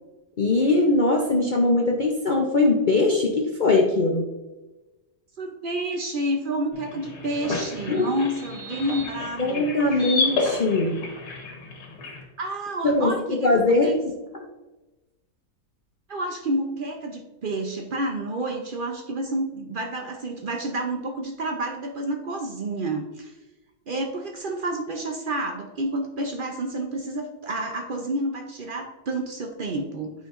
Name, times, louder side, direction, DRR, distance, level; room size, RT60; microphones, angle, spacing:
voice 1, 0.4-4.3 7.9-8.2 9.4-11.1 12.8-13.1 13.4-14.1, left 2 dB, 55° left, 0 dB, 0.5 m, -21 dB
voice 2, 5.4-10.1 12.4-13.5 13.8-14.0 16.1-23.3 23.9-30.1, right 1 dB, 60° right, 3 dB, 0.5 m, -29 dB
sound 1, 6.7-12.2, left 3 dB, 80° left, 1.9 m, -31 dB
8.8 x 5.5 x 2.5 m, 1.1 s
omnidirectional pair, 1.7 m